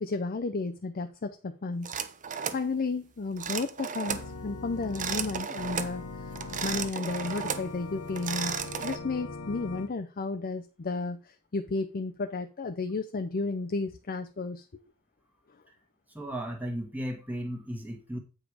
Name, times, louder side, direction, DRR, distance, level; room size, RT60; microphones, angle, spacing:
voice 1, 0.0-2.0 2.5-6.3 6.6-8.6 8.8-14.8, left 3 dB, 40° left, 7 dB, 0.6 m, -33 dB
sound 1, 1.8-2.7 3.4-4.3 4.8-6.0 6.4-7.7 8.1-9.0, right 7 dB, 35° right, 0.6 m, -34 dB
Organ, 4.1-9.9, left 3 dB, 75° left, 1.0 m, -40 dB
voice 2, 16.1-18.2, equal, 10° right, 1 dB, 1.4 m, -35 dB
8.5 x 5.2 x 4.8 m, 0.33 s
head